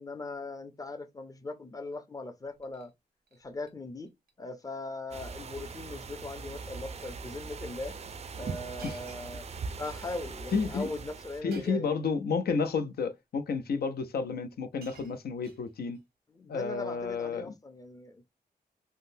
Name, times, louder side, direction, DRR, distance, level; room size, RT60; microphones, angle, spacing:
voice 1, 0.0-2.9 3.3-4.1 4.4-8.0 8.4-9.5 9.8-11.9 16.3-18.3, left 2 dB, 20° left, 0.5 m, -40 dB
Shatter, 2.5-2.9 3.3-3.7 4.1-4.3 4.6-4.7 5.6-5.8 6.1-6.4 7.1-7.2 8.8-9.9 11.5-12.0 13.0-13.1 14.1-14.2 14.5-16.0 17.0-17.2, right 5 dB, 85° right, 0.8 m, -54 dB
sound 1, 5.1-11.4, right 4 dB, 40° right, 0.4 m, -41 dB
voice 2, 10.5-10.9 11.4-16.0 16.5-17.5, left 5 dB, 80° left, 0.6 m, -31 dB
3.6 x 2.1 x 2.6 m
wide cardioid pair, 110°, 16 cm